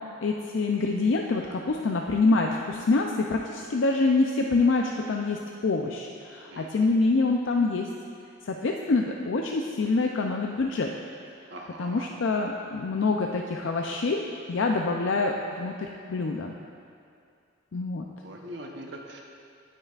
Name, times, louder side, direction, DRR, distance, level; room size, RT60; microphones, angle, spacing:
voice 1, 0.2-7.9 8.5-10.9 11.8-14.2 14.5-16.5 17.7-18.0, left 3 dB, 70° left, 1 dB, 0.5 m, -26 dB
voice 2, 6.5-6.9 8.6-8.8 11.5-12.1 18.2-19.2, right 1 dB, 60° right, 1 dB, 0.9 m, -42 dB
17.0 x 6.6 x 2.4 m, 2.4 s
head